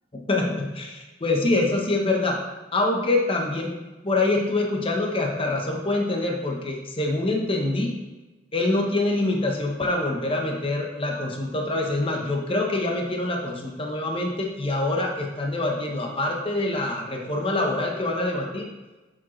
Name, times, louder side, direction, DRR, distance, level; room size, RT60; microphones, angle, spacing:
voice 1, 0.3-2.4 2.7-3.7 4.0-7.9 8.5-18.6, left 2 dB, 30° left, 1 dB, 0.9 m, -25 dB
7.7 x 5.1 x 3.2 m, 1.1 s
head